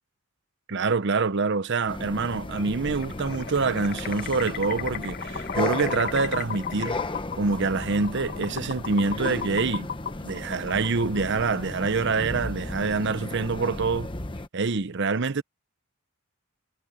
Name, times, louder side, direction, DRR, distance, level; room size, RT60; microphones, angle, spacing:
voice 1, 0.7-7.0 7.4-9.9 10.2-14.1 14.5-15.4, right 4 dB, 55° right, 0.8 m, -26 dB
sound 1, 1.9-14.5, left 2 dB, 25° left, 1.1 m, -35 dB
sound 2, 2.9-11.4, left 7 dB, 45° left, 1.4 m, -36 dB
head